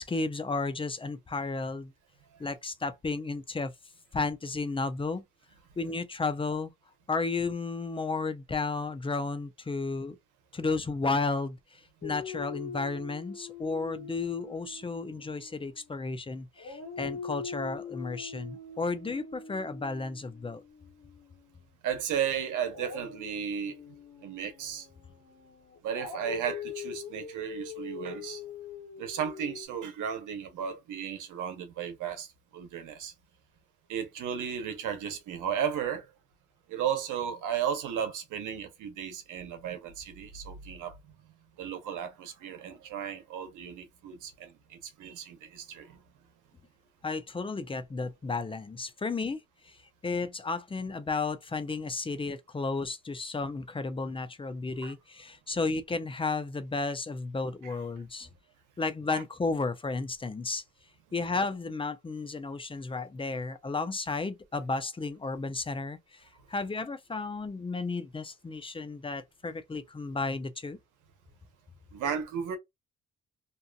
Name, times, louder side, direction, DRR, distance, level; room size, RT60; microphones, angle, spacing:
voice 1, 0.0-1.9 2.4-3.7 4.1-5.2 5.8-6.7 7.1-10.2 10.5-20.6 47.0-49.8 50.0-58.3 58.8-60.6 61.1-70.8, left 3 dB, 20° left, 0.4 m, -33 dB
Dog, 12.0-16.2 16.6-21.6 22.7-29.7, left 5 dB, 60° left, 1.1 m, -43 dB
voice 2, 21.8-23.8 24.2-24.9 25.8-28.4 29.0-33.1 33.9-36.1 36.7-41.0 41.6-46.0 54.8-54.9 57.6-57.7 59.1-59.2 71.9-72.6, right 8 dB, 85° right, 1.0 m, -34 dB
2.7 x 2.4 x 2.3 m
cardioid pair, 90°, 30 cm